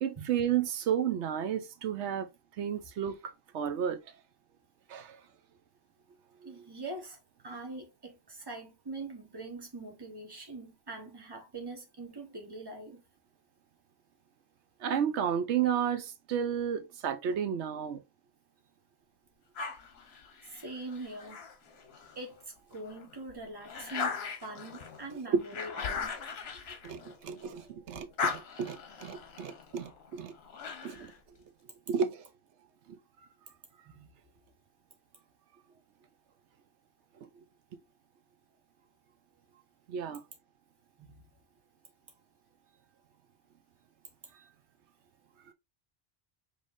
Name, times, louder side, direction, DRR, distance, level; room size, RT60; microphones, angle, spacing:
voice 1, 0.0-2.3 2.6-4.0 4.9-5.2 6.4-6.5 14.8-18.0 25.3-25.4 26.8-30.3 30.8-31.1 31.9-32.2 32.9-33.0 39.9-40.2 45.5-45.6, right 8 dB, 85° right, 1.0 m, -32 dB
voice 2, 6.4-7.2 7.4-13.0 20.4-21.4 22.1-26.2 33.9-34.1 41.0-41.2, right 2 dB, 20° right, 1.1 m, -43 dB
sound 1, 19.5-22.2 22.7-27.6 27.9-31.2, left 5 dB, 70° left, 1.1 m, -39 dB
5.4 x 3.3 x 2.5 m
omnidirectional pair, 1.1 m